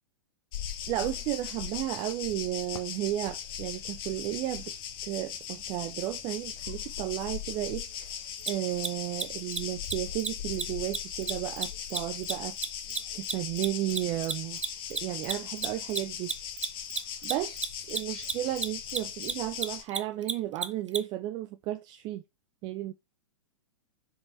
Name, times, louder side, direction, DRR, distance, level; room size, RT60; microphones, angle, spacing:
sound 1, 0.5-19.8, left 9 dB, 50° left, 1.2 m, -39 dB
voice 1, 0.9-4.7 5.0-12.6 13.1-14.6 14.9-16.3 17.2-22.2 22.6-22.9, right 15 dB, 30° right, 0.4 m, -33 dB
Mechanisms, 8.4-8.5 8.8-8.9 9.1-9.2 9.5-9.6 9.8-9.9 10.2-10.3 10.5-10.6 10.9-13.7 13.9-21.0, right 5 dB, 75° right, 0.9 m, -31 dB
5.3 x 4.8 x 4.3 m
figure-of-eight pair, 105°, 15 cm